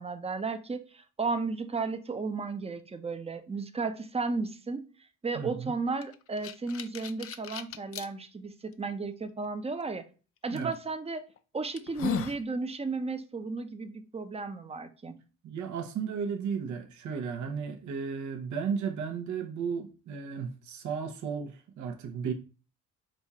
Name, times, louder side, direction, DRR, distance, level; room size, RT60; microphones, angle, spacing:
voice 1, 0.0-4.8 5.2-10.0 10.4-11.2 11.5-15.2, right 4 dB, 20° right, 0.6 m, -34 dB
voice 2, 5.3-5.7 10.5-10.7 15.4-22.3, right 6 dB, 70° right, 0.8 m, -34 dB
sound 1, 6.0-8.1 8.7-8.8 10.6-10.7 11.3-11.4 11.8-12.4, left 9 dB, 50° left, 0.5 m, -36 dB
5.3 x 2.4 x 4.2 m
cardioid pair, 90°, 30 cm